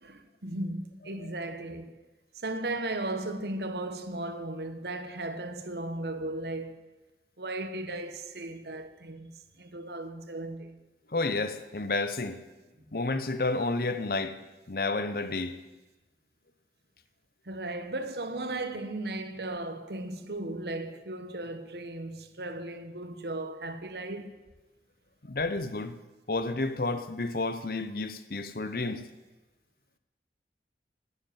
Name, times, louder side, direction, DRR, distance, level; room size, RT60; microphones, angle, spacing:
voice 1, 0.0-1.9 2.4-6.9 7.4-10.8 17.5-24.3, right 2 dB, 70° right, 1.1 m, -36 dB
voice 2, 11.1-12.4 12.9-14.3 14.7-15.5 25.2-26.0 26.3-29.0, left 3 dB, 55° left, 0.9 m, -30 dB
11.0 x 9.9 x 9.1 m
head